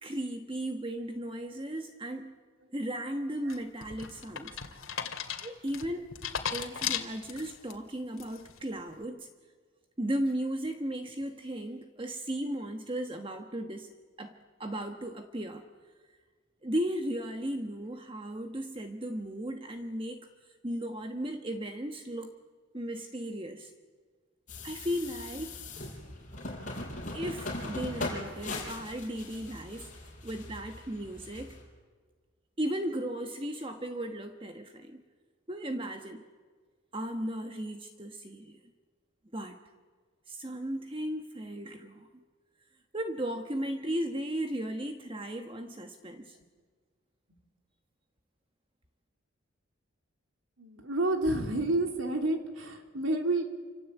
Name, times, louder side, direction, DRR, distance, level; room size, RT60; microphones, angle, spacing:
voice 1, 0.0-2.4 2.7-4.6 5.4-6.0 6.5-9.3 10.0-13.9 14.2-15.6 16.6-20.2 20.6-22.3 22.7-23.7 24.6-25.5 27.1-29.9 30.2-31.6 32.6-35.0 35.5-36.2 36.9-38.6 39.3-39.6 40.3-42.2 42.9-46.4, right 1 dB, 25° right, 5 dB, 1.3 m, -36 dB
sound 1, 3.5-7.7 8.2-8.6, left 8 dB, 85° left, 2.3 m, -36 dB
sound 2, 24.5-31.6, left 2 dB, 40° left, 5.9 m, -40 dB
voice 2, 50.6-53.4, right 2 dB, 75° right, 4 dB, 3.5 m, -30 dB
28.0 x 25.5 x 8.3 m, 1.5 s
head